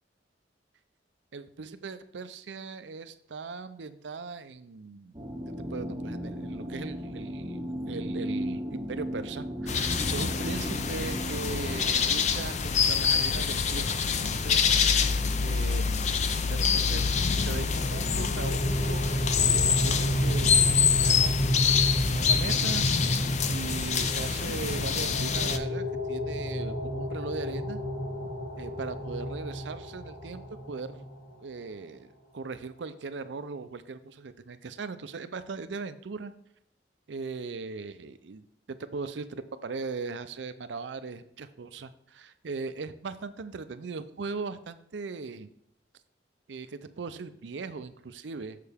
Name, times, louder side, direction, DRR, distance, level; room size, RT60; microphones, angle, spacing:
voice 1, 1.3-5.1 5.7-7.6 7.9-13.9 14.2-14.6 15.4-17.0 17.5-23.2 23.5-27.8 28.6-30.4 30.7-31.1 31.4-36.3 37.1-38.4 38.7-45.5 46.5-48.6, right 4 dB, 80° right, 11 dB, 0.5 m, -39 dB
sound 1, 5.1-11.9, equal, 25° right, 0.7 m, -36 dB
sound 2, 9.7-25.6, left 6 dB, 40° left, 0.5 m, -26 dB
sound 3, 16.7-31.3, equal, 85° left, 2.5 m, -32 dB
6.9 x 6.6 x 3.5 m, 0.71 s
head